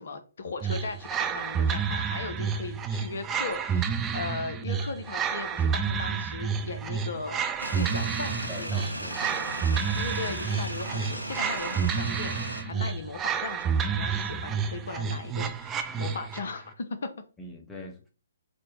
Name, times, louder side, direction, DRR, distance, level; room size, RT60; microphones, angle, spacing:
voice 1, 0.0-7.4 7.7-8.7 9.9-17.1, left 4 dB, 55° left, 0.6 m, -37 dB
sound 1, 0.6-16.5, right 6 dB, 15° right, 0.3 m, -30 dB
voice 2, 2.1-2.5 8.4-9.6 12.6-12.9 15.9-16.1 17.4-18.0, left 2 dB, 10° left, 0.7 m, -43 dB
sound 2, 7.6-12.6, right 1 dB, 90° right, 0.7 m, -36 dB
4.2 x 2.1 x 4.4 m
figure-of-eight pair, 130°, 0 cm